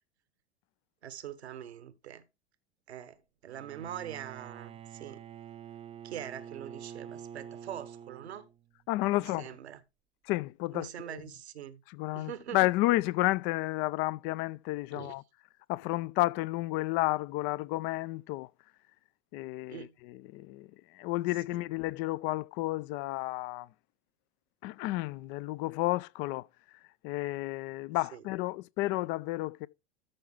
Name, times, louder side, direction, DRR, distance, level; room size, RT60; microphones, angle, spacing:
voice 1, 1.0-2.2 2.9-5.2 6.0-8.5 9.2-9.8 10.7-11.8 12.1-12.6 14.9-15.1 19.7-19.9 21.5-21.6 28.1-28.2, right 10 dB, 70° right, 1.1 m, -43 dB
Bowed string instrument, 3.5-8.7, right 9 dB, 20° right, 0.5 m, -47 dB
voice 2, 8.9-9.5 10.2-11.2 11.9-15.2 15.7-18.5 19.3-23.7 24.6-26.5 27.0-29.7, left 19 dB, 35° left, 0.4 m, -31 dB
13.0 x 5.5 x 3.6 m
figure-of-eight pair, 80°, 33 cm